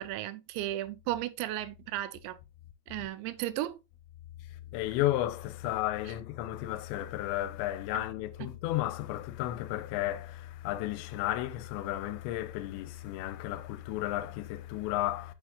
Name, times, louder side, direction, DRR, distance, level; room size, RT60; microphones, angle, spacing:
voice 1, 0.0-2.4 2.9-3.8 7.9-8.0, right 14 dB, 90° right, 2.8 m, -35 dB
voice 2, 4.5-15.3, left 15 dB, 85° left, 2.8 m, -33 dB
8.0 x 6.6 x 2.4 m
omnidirectional pair, 5.1 m